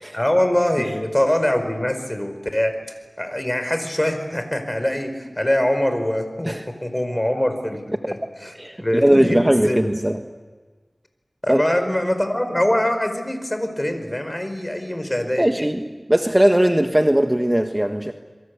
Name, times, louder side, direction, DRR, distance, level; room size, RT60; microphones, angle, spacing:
voice 1, 0.1-2.7 3.2-9.9 11.4-15.6, left 1 dB, 20° left, 7 dB, 4.9 m, -23 dB
voice 2, 8.6-10.2 11.5-11.6 15.4-15.8 16.1-18.1, right 1 dB, 15° right, 5 dB, 1.3 m, -19 dB
28.0 x 23.0 x 8.4 m, 1.4 s
wide cardioid pair, 50°, 0 cm